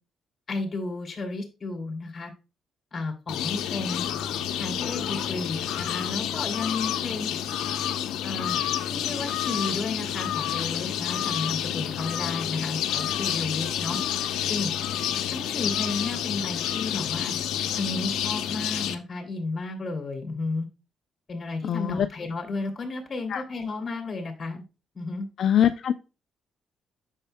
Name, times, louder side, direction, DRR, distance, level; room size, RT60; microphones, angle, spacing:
voice 1, 0.5-2.3 2.9-4.1 4.6-7.3 8.2-8.6 8.9-14.0 14.5-14.7 15.3-17.3 17.7-20.7 21.3-24.6 24.9-25.3, left 3 dB, 35° left, 3 dB, 2.7 m, -33 dB
sound 1, 3.3-18.9, left 10 dB, 90° left, 0.7 m, -29 dB
voice 2, 21.7-22.1 23.3-23.4 25.4-25.9, left 9 dB, 65° left, 9 dB, 0.4 m, -22 dB
8.8 x 6.5 x 2.2 m, 0.30 s
cardioid pair, 90°, 0 cm